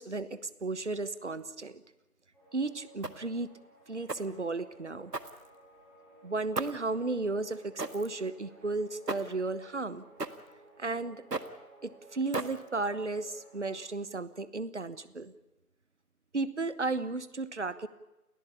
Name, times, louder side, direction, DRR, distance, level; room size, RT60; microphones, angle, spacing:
voice 1, 0.0-1.8 2.5-3.5 3.9-5.1 6.2-10.0 10.8-11.2 11.8-15.3 16.3-17.9, right 3 dB, 50° right, 15 dB, 1.2 m, -34 dB
sound 1, 2.3-13.8, right 2 dB, ahead, 3.4 m, -57 dB
sound 2, 3.0-3.4 4.1-4.4 5.1-5.8 6.5-6.9 7.8-8.2 9.1-9.4 10.2-10.5 11.3-11.6 12.3-12.8, right 3 dB, 85° right, 1.8 m, -36 dB
29.5 x 13.5 x 8.4 m, 0.99 s
figure-of-eight pair, 165°, 47 cm